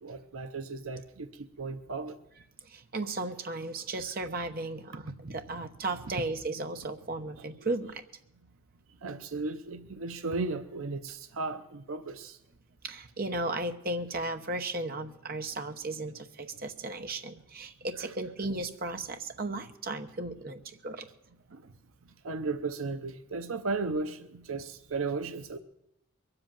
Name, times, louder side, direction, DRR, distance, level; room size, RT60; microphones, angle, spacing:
voice 1, 0.0-2.2 5.5-5.6 9.0-12.4 21.5-21.6 22.2-25.6, right 3 dB, 70° right, 10 dB, 0.7 m, -35 dB
voice 2, 2.6-8.0 12.8-21.1, right 2 dB, 45° right, 7 dB, 0.9 m, -35 dB
22.0 x 7.9 x 7.4 m, 0.80 s
head